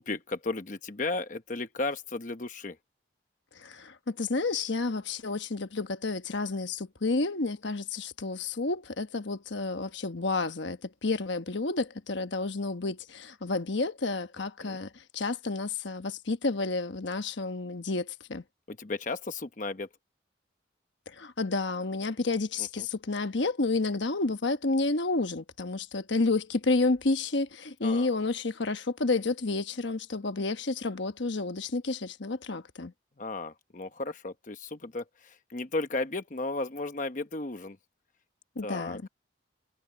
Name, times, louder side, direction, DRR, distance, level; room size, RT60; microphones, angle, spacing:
voice 1, 0.0-2.8 14.6-14.8 18.7-19.9 22.6-22.9 27.8-28.1 33.2-37.8 38.6-39.0, left 2 dB, 40° left, 0.9 m, -34 dB
voice 2, 3.5-18.4 21.1-32.9 38.6-39.1, left 3 dB, 70° left, 1.1 m, -30 dB
head